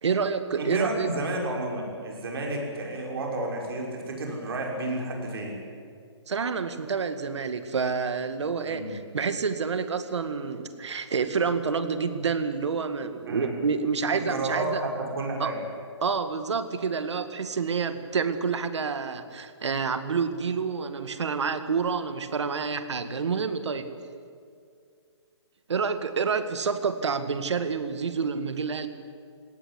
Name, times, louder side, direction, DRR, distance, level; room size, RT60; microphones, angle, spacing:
voice 1, 0.0-1.1 6.3-14.8 15.4-15.5 16.0-23.9 25.7-28.9, right 5 dB, 75° right, 10 dB, 2.0 m, -28 dB
voice 2, 0.6-5.6 8.6-8.9 13.3-13.6 14.1-15.6, right 2 dB, 55° right, 0 dB, 6.1 m, -31 dB
21.5 x 17.5 x 10.0 m, 2.3 s
hypercardioid pair, 165°, 15 cm